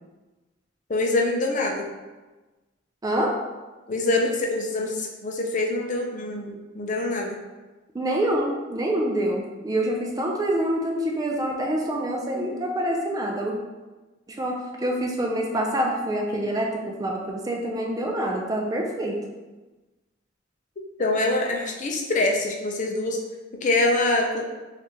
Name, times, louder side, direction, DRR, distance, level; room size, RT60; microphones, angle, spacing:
voice 1, 0.9-1.9 3.9-7.4 21.0-23.2 23.6-24.5, left 2 dB, 40° left, 1 dB, 0.5 m, -24 dB
voice 2, 3.0-3.3 7.9-13.5 14.3-19.2, right 1 dB, 20° right, 0 dB, 0.4 m, -26 dB
4.3 x 2.5 x 2.8 m, 1.2 s
head